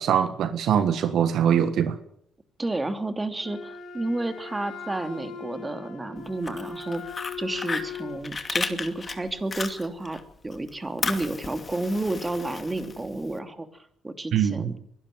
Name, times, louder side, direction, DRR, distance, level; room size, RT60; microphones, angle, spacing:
voice 1, 0.0-2.0 14.3-14.7, right 8 dB, 70° right, 11 dB, 1.4 m, -23 dB
voice 2, 2.6-14.8, right 2 dB, 20° right, 8 dB, 2.9 m, -31 dB
Wind instrument woodwind instrument, 3.4-8.3, left 6 dB, 65° left, 3.5 m, -39 dB
Fire, 6.3-10.2 10.5-13.3, left 4 dB, 35° left, 2.5 m, -34 dB
23.0 x 12.5 x 9.5 m, 0.69 s
supercardioid pair, 60°, 0 cm